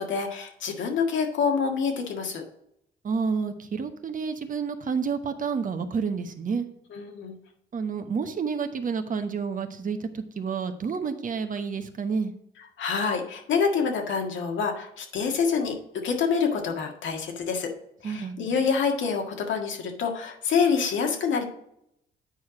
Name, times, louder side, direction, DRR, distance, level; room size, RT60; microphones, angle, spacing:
voice 1, 0.0-2.4 6.9-7.3 12.8-15.8 16.0-17.7 18.0-21.4, left 5 dB, 75° left, 3 dB, 1.8 m, -26 dB
voice 2, 3.0-6.7 7.7-12.3 18.0-18.5, right 5 dB, 45° right, 8 dB, 1.0 m, -29 dB
9.2 x 4.7 x 4.9 m, 0.75 s
cardioid pair, 90°, 20 cm